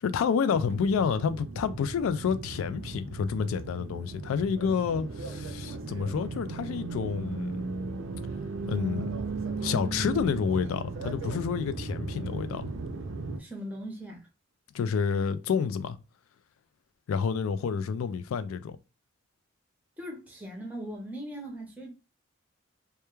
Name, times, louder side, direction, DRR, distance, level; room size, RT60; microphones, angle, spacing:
voice 1, 0.0-7.6 8.6-9.1 9.6-12.7 14.7-16.0 17.1-18.8, left 6 dB, 80° left, 0.3 m, -29 dB
sound 1, 0.5-13.4, right 3 dB, 65° right, 0.4 m, -36 dB
voice 2, 13.4-14.3 20.0-21.9, equal, 5° right, 0.6 m, -39 dB
2.2 x 2.2 x 3.0 m
head